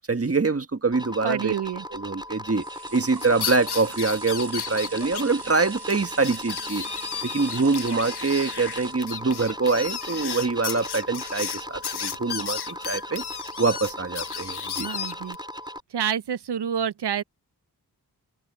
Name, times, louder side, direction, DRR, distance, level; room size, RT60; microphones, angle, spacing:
voice 1, 0.1-1.5 1.9-2.6 2.9-6.8 7.2-13.2 13.6-14.9, right 3 dB, 35° right, 1.6 m, -25 dB
sound 1, 0.9-15.8, equal, 10° right, 4.1 m, -38 dB
voice 2, 1.2-1.8 14.8-15.4 15.9-17.2, right 8 dB, 90° right, 0.7 m, -28 dB
sound 2, 1.6-11.3 11.8-11.9, right 4 dB, 65° right, 7.6 m, -44 dB
sound 3, 3.2-5.2 5.5-5.6 5.9-6.0 6.2-15.4, left 8 dB, 75° left, 0.8 m, -34 dB
wide cardioid pair, 90°, 40 cm